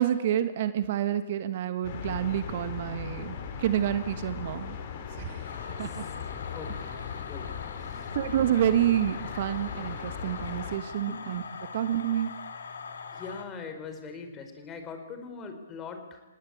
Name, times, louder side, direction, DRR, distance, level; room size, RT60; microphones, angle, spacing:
voice 1, 0.0-4.8 5.2-5.5 5.8-6.0 8.1-11.4 11.7-12.3, right 11 dB, 50° right, 11 dB, 1.5 m, -28 dB
sound 1, 1.8-10.8, left 7 dB, 45° left, 4.1 m, -38 dB
sound 2, 5.4-13.4, left 5 dB, 75° left, 3.3 m, -42 dB
voice 2, 6.5-7.5 7.7-8.2 11.1-11.3 13.1-16.2, left 4 dB, 20° left, 7 dB, 4.2 m, -42 dB
28.5 x 18.5 x 8.8 m, 1.2 s
hypercardioid pair, 135°, 0 cm